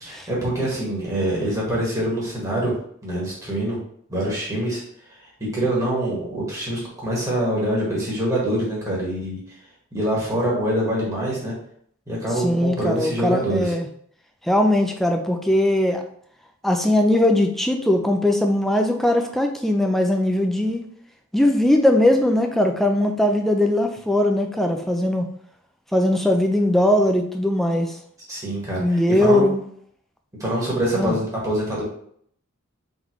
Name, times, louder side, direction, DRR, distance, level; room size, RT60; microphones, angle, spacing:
voice 1, 0.0-2.7 3.0-3.8 4.1-4.8 5.4-9.4 9.9-11.5 12.1-13.7 28.3-29.4 30.4-31.8, right 1 dB, 15° right, -5 dB, 1.5 m, -25 dB
voice 2, 12.4-13.9 14.5-16.0 16.6-20.8 21.3-25.3 25.9-27.9 28.8-29.6 31.0-31.2, left 1 dB, ahead, 4 dB, 0.4 m, -20 dB
3.8 x 3.6 x 3.0 m, 0.64 s
head